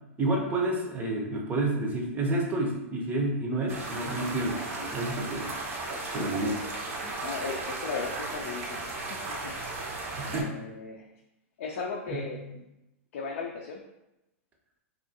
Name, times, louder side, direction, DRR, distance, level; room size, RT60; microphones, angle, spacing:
voice 1, 0.2-5.5 6.1-6.6 10.1-10.6 12.1-12.5, right 2 dB, 20° right, 1 dB, 0.6 m, -30 dB
sound 1, 3.7-10.4, right 2 dB, 65° right, 0.7 m, -35 dB
voice 2, 6.0-6.5 7.2-9.8 10.2-11.1 11.6-12.6 13.1-13.8, left 4 dB, 65° left, -1 dB, 0.4 m, -37 dB
2.6 x 2.4 x 2.6 m, 0.91 s
hypercardioid pair, 130°, 8 cm